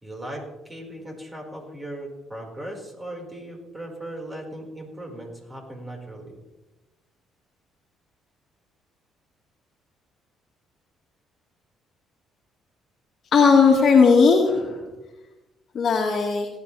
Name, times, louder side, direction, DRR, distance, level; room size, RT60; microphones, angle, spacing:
voice 1, 0.0-6.3, right 1 dB, 20° right, 0 dB, 5.1 m, -38 dB
voice 2, 13.3-14.9 15.7-16.5, left 5 dB, 50° left, -2 dB, 2.0 m, -17 dB
18.0 x 11.0 x 3.5 m, 1.1 s
supercardioid pair, 65°, 0 cm